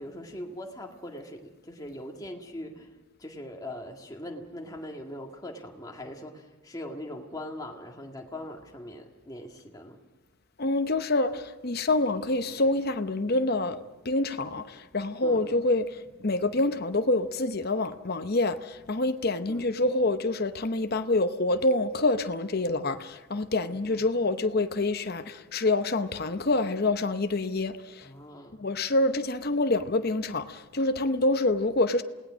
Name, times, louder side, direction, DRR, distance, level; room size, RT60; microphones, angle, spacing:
voice 1, 0.0-2.9 3.2-10.0 15.2-15.6 19.5-19.7 23.6-24.0 28.0-28.6, left 1 dB, 15° left, 1.9 m, -41 dB
voice 2, 10.6-13.8 14.0-15.9 16.2-28.1 28.6-32.0, left 2 dB, 45° left, 0.8 m, -26 dB
28.5 x 18.0 x 6.3 m
head